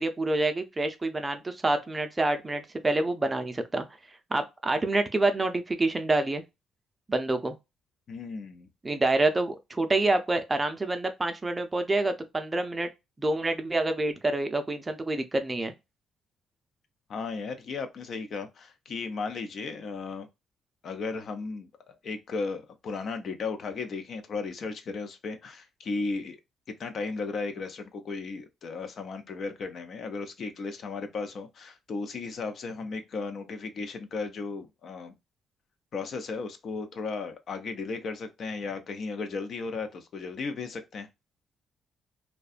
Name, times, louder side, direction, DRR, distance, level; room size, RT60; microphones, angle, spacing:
voice 1, 0.0-3.8 4.3-6.4 7.1-7.6 8.8-12.9 13.2-15.7, right 2 dB, 20° right, 0.5 m, -27 dB
voice 2, 8.1-8.7 17.1-20.3 20.8-26.4 26.8-35.1 35.9-41.1, left 4 dB, 55° left, 0.5 m, -35 dB
2.6 x 2.2 x 2.4 m
cardioid pair, 90°, 0 cm